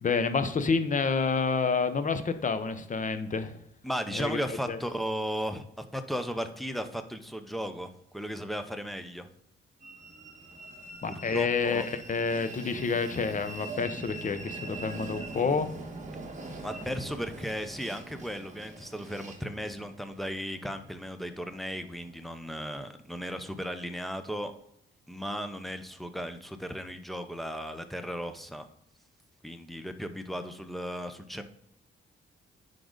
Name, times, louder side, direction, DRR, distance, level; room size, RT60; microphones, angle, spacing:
voice 1, 0.0-3.6 4.1-4.8 11.0-15.7, left 5 dB, 40° left, 10 dB, 0.8 m, -29 dB
voice 2, 3.8-9.3 11.0-11.9 16.6-24.5 25.1-28.6 29.4-31.4, equal, ahead, 8 dB, 0.7 m, -36 dB
Train, 9.8-22.3, right 2 dB, 35° right, 1.4 m, -43 dB
10.0 x 3.8 x 3.8 m, 0.77 s
cardioid pair, 105°, 21 cm